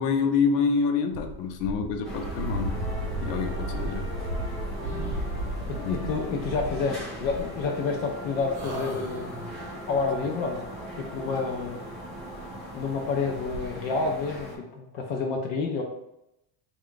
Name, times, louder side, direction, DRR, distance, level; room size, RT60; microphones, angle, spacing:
voice 1, 0.0-2.8 3.2-4.1 5.8-6.1, left 5 dB, 80° left, 6 dB, 0.7 m, -27 dB
sound 1, 1.1-7.6 8.3-8.8 9.1-9.2 9.9-10.0 11.0-11.1 11.4-11.5 12.1-12.3 12.6-12.7 12.8-12.9 13.3-13.7, right 1 dB, 70° right, 0.7 m, -34 dB
sound 2, 2.0-14.5, equal, ahead, 0.7 m, -39 dB
sound 3, 4.8-6.0 7.3-8.2 8.5-9.8, right 2 dB, 35° right, 0.9 m, -39 dB
voice 2, 5.7-9.5 9.9-10.7 11.0-11.8 12.7-15.8, left 4 dB, 50° left, 1 dB, 0.4 m, -29 dB
3.4 x 2.3 x 3.7 m, 0.86 s
cardioid pair, 175°, 46 cm